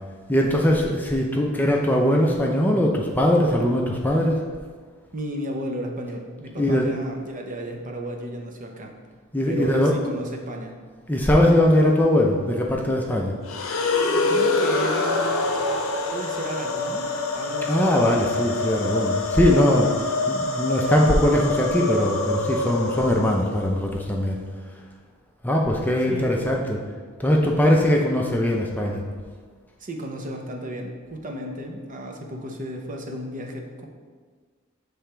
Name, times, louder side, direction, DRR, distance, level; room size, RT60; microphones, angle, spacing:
voice 1, 0.3-4.4 6.6-6.9 9.3-10.0 11.1-13.3 17.7-19.9 20.3-24.4 25.4-26.8 27.2-29.0, left 1 dB, 10° left, -1 dB, 0.5 m, -21 dB
voice 2, 5.1-9.0 9.5-10.8 14.3-15.3 15.7-18.1 26.1-26.3 27.8-28.0 29.8-33.9, right 1 dB, 40° right, 2 dB, 0.7 m, -33 dB
sound 1, 13.4-23.7, left 2 dB, 70° left, 0.7 m, -25 dB
6.9 x 3.4 x 4.4 m, 1.5 s
head